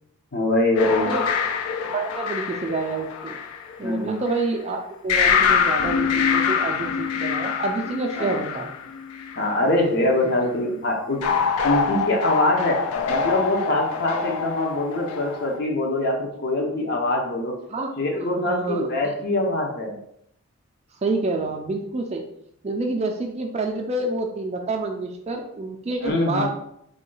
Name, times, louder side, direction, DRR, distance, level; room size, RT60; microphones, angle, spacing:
voice 1, 0.3-1.2 3.8-4.1 8.2-8.4 9.3-11.2 11.6-12.8 13.1-17.5 18.0-20.0 26.0-26.5, left 1 dB, 50° left, 1 dB, 0.7 m, -23 dB
sound 1, 0.8-4.4 5.1-9.6 11.2-15.6, left 6 dB, 85° left, 0.4 m, -25 dB
voice 2, 0.8-1.3 1.9-3.4 3.8-8.7 17.7-17.9 18.2-19.1 21.0-22.2 22.6-26.5, right 3 dB, 30° right, 4 dB, 0.3 m, -28 dB
3.7 x 2.2 x 3.8 m, 0.73 s
head